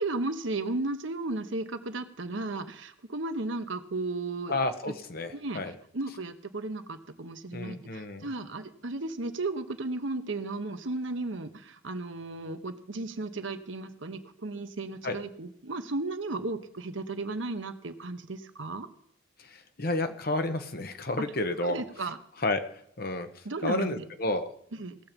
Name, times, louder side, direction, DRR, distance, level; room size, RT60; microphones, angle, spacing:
voice 1, 0.0-4.6 4.9-5.0 5.3-5.6 5.9-18.9 21.2-21.3 21.6-22.2 23.4-24.0 24.7-25.0, right 2 dB, 75° right, 8 dB, 1.1 m, -34 dB
voice 2, 4.5-5.7 7.5-8.3 15.0-15.2 19.4-21.8 22.4-22.6 23.0-24.5, left 2 dB, 50° left, 8 dB, 1.1 m, -31 dB
18.5 x 7.2 x 5.3 m, 0.72 s
head